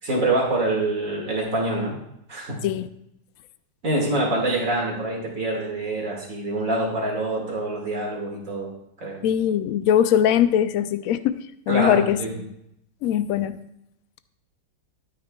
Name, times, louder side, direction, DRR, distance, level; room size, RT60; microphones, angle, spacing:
voice 1, 0.0-2.0 2.3-2.7 3.8-8.7 9.0-9.2 11.7-12.3, right 2 dB, 50° right, -1 dB, 2.3 m, -25 dB
voice 2, 9.2-11.4 11.7-12.5 13.0-13.6, left 10 dB, 70° left, 12 dB, 0.8 m, -21 dB
12.5 x 9.4 x 2.3 m, 0.78 s
omnidirectional pair, 1.9 m